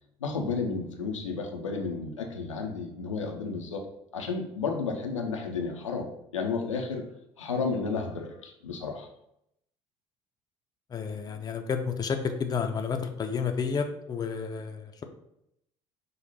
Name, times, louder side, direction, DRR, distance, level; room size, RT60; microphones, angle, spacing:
voice 1, 0.2-3.8 4.1-6.1 6.3-7.0 7.4-9.1, left 4 dB, 80° left, 2 dB, 0.5 m, -32 dB
voice 2, 10.9-15.0, left 6 dB, 25° left, 5 dB, 0.5 m, -31 dB
5.1 x 2.1 x 4.0 m, 0.78 s
figure-of-eight pair, 55°, 16 cm